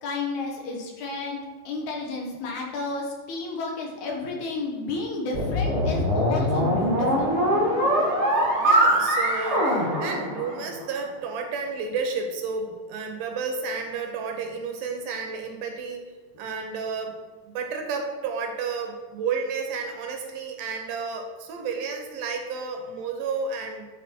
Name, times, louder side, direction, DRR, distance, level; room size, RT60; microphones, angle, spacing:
voice 1, 0.0-7.3, left 2 dB, 70° left, 0 dB, 2.5 m, -31 dB
sound 1, 5.3-10.8, equal, 40° right, 1.0 m, -23 dB
voice 2, 8.6-16.0 16.4-17.2 17.4-23.9, right 5 dB, 80° right, 3 dB, 2.5 m, -31 dB
9.8 x 3.9 x 4.4 m, 1.4 s
omnidirectional pair, 3.8 m